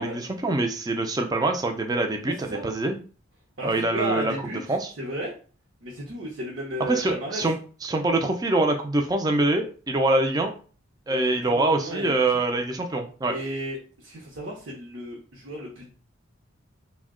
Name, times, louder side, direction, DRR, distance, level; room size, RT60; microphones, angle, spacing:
voice 1, 0.0-3.0 3.6-4.3 4.7-4.9 6.9-7.6 7.8-10.5 11.1-13.3, right 2 dB, 20° right, 4 dB, 0.3 m, -24 dB
voice 2, 3.6-5.3 5.8-7.4 11.1-12.6 13.2-15.9, right 1 dB, 60° right, -4 dB, 0.7 m, -34 dB
2.7 x 2.1 x 3.6 m, 0.39 s
head